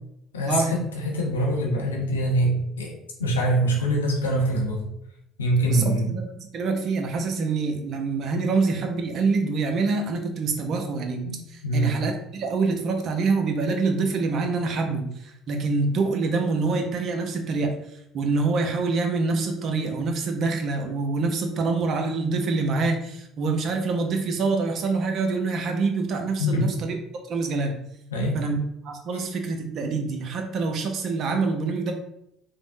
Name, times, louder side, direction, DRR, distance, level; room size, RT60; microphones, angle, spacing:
voice 1, 0.3-2.9 3.2-4.8 5.4-6.2 11.2-11.3 11.6-12.0 26.4-26.6 28.1-28.4 29.1-29.2, right 1 dB, 90° left, -1 dB, 0.6 m, -24 dB
voice 2, 5.7-6.3 6.5-17.7 18.1-27.0 27.3-27.7 28.3-28.6 28.8-31.9, right 4 dB, 55° right, 4 dB, 0.5 m, -26 dB
3.4 x 2.0 x 2.6 m, 0.80 s
hypercardioid pair, 65°, 0 cm